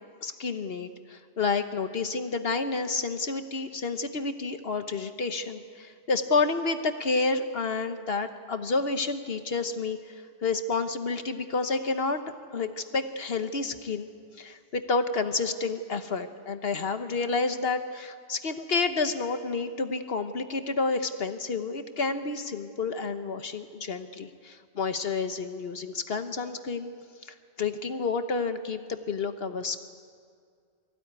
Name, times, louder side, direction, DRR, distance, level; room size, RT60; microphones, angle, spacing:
voice 1, 0.2-12.2 12.5-14.1 14.4-26.9 27.2-28.8 29.1-29.9, left 4 dB, 60° left, 8 dB, 1.2 m, -30 dB
23.5 x 16.0 x 9.5 m, 2.2 s
omnidirectional pair, 1.1 m